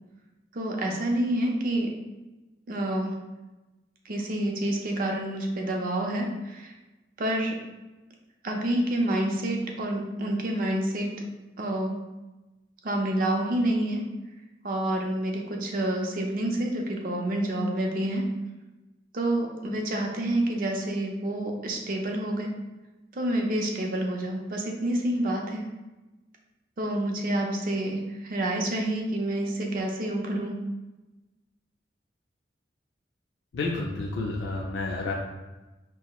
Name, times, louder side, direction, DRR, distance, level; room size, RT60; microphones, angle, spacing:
voice 1, 0.5-2.0 2.7-3.2 4.0-6.7 7.2-7.6 8.4-11.2 11.6-12.0 12.8-14.1 14.6-18.3 19.1-22.5 23.1-25.7 26.8-30.6, right 1 dB, 50° right, 1 dB, 0.5 m, -28 dB
voice 2, 33.5-35.1, left 3 dB, 75° left, -2 dB, 0.4 m, -30 dB
5.7 x 2.1 x 2.3 m, 1.1 s
head